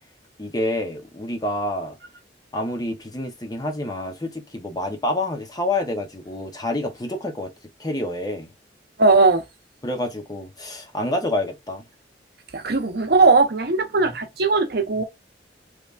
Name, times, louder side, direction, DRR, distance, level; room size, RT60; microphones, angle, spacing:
voice 1, 0.4-2.0 2.5-7.5 7.8-8.5 9.8-11.8, left 1 dB, 20° left, 0.9 m, -28 dB
voice 2, 9.0-9.4 12.5-15.0, right 3 dB, 60° right, 0.9 m, -18 dB
3.4 x 3.2 x 2.5 m
head